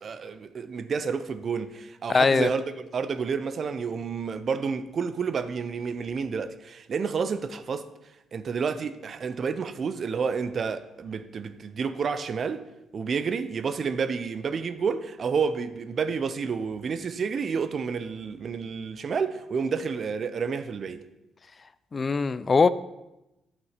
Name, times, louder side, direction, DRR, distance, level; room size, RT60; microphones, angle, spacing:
voice 1, 0.0-2.6 2.9-7.8 8.3-12.6 12.9-21.0, right 5 dB, 50° right, 0.7 m, -30 dB
voice 2, 2.1-2.5 21.9-22.7, left 4 dB, 35° left, 0.4 m, -21 dB
9.3 x 6.2 x 5.7 m
cardioid pair, 90°, 0 cm